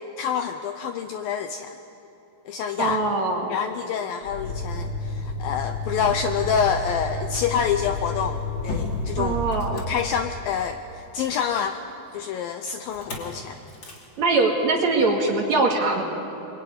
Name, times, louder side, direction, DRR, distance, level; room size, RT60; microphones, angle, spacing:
voice 1, 0.2-1.8 2.5-3.0 3.5-8.4 8.6-9.4 9.7-11.8 12.1-13.6, left 7 dB, 80° left, 7 dB, 2.2 m, -27 dB
voice 2, 2.8-3.5 9.2-9.8 14.2-16.0, right 3 dB, 45° right, 1 dB, 3.0 m, -22 dB
Motor vehicle (road), 4.2-10.6 12.9-13.3 13.7-14.0, left 1 dB, 30° left, 3.4 m, -31 dB
26.5 x 23.0 x 9.6 m, 2.9 s
omnidirectional pair, 4.9 m